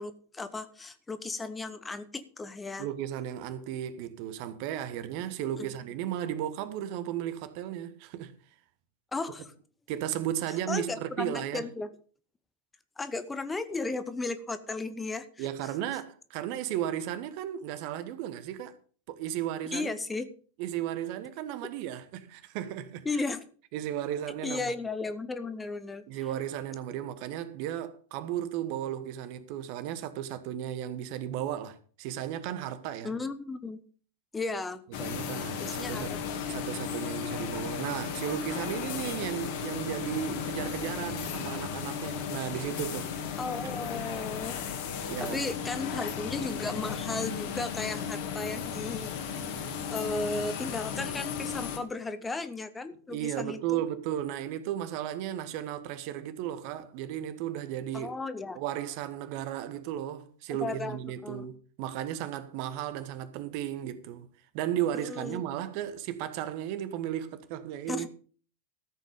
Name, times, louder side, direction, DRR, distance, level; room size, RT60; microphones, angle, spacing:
voice 1, 0.0-2.9 5.6-5.7 9.1-9.5 10.7-11.9 13.0-15.4 19.7-20.3 23.0-23.4 24.4-26.0 33.0-33.8 34.3-34.8 35.6-36.3 43.4-44.6 45.2-49.1 49.9-53.6 57.9-58.6 60.5-61.0 61.2-61.5 64.9-65.4 67.9-68.1, left 3 dB, 10° left, 0.9 m, -35 dB
voice 2, 2.8-8.3 9.9-11.6 15.4-18.7 19.1-19.9 20.6-23.2 23.7-24.6 26.1-33.1 35.0-36.2 36.5-43.7 45.1-45.4 53.1-58.1 58.5-64.3 64.5-68.1, right 11 dB, 45° right, 1.3 m, -35 dB
sound 1, 34.9-51.8, left 7 dB, 50° left, 2.1 m, -35 dB
13.5 x 7.8 x 5.3 m
figure-of-eight pair, 90°, 0 cm